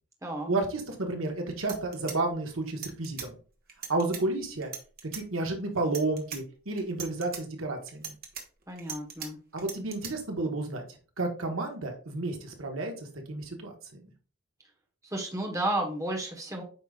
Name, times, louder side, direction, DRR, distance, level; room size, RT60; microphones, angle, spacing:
voice 1, 0.5-3.3 3.9-4.7 5.0-8.1 9.5-10.8 11.2-13.7, right 2 dB, 65° right, 3 dB, 1.4 m, -31 dB
sound 1, 1.2-1.3 1.6-3.3 3.7-4.2 4.6-5.2 5.8-6.4 6.8-7.4 7.9-9.3 9.6-10.1, right 7 dB, 45° right, 1.4 m, -40 dB
voice 2, 8.7-9.4 15.0-16.6, right 1 dB, 15° right, 1 dB, 1.3 m, -32 dB
8.7 x 5.2 x 2.4 m, 0.39 s
head